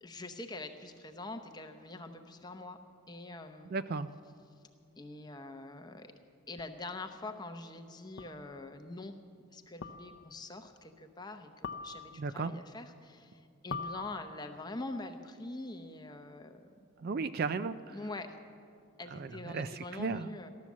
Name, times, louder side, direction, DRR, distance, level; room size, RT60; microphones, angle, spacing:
voice 1, 0.0-2.8 3.1-3.8 5.0-6.1 6.5-9.2 9.5-16.7 17.9-18.4 19.0-20.5, left 2 dB, 20° left, 6 dB, 0.8 m, -44 dB
voice 2, 3.7-4.1 12.2-12.5 17.0-18.0 19.1-20.3, right 4 dB, 45° right, 12 dB, 0.3 m, -35 dB
sound 1, 6.6-6.7 8.2-8.5 9.8-10.4 11.6-12.4 13.7-14.6, left 5 dB, 55° left, 0.5 m, -43 dB
14.5 x 11.5 x 7.3 m, 2.3 s
head